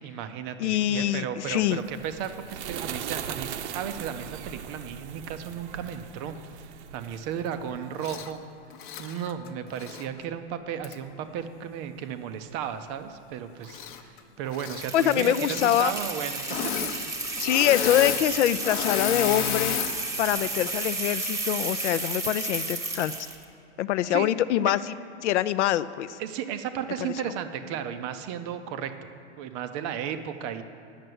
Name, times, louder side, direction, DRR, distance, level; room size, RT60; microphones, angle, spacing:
voice 1, 0.0-6.3 6.6-8.4 9.0-16.4 16.8-16.9 24.1-24.3 26.2-28.9 29.4-30.6, right 8 dB, 25° right, 9 dB, 0.4 m, -34 dB
voice 2, 0.6-1.8 14.9-15.9 17.4-19.8 20.2-23.1 23.8-24.9 25.2-26.2 27.0-27.1, left 12 dB, 85° left, 16 dB, 0.5 m, -24 dB
sound 1, 1.6-8.2, right 9 dB, 75° right, 0.7 m, -39 dB
Engine / Mechanisms, 8.0-8.3 8.7-10.1 10.8-10.9 13.6-14.2 14.5-14.9 15.4-15.9 16.4-17.0 17.2-19.9 20.4-20.7, left 9 dB, 45° left, 0.7 m, -32 dB
sound 2, 14.7-23.4, right 2 dB, 10° right, 0.9 m, -33 dB
9.3 x 6.6 x 7.7 m, 2.5 s
supercardioid pair, 145°, 34 cm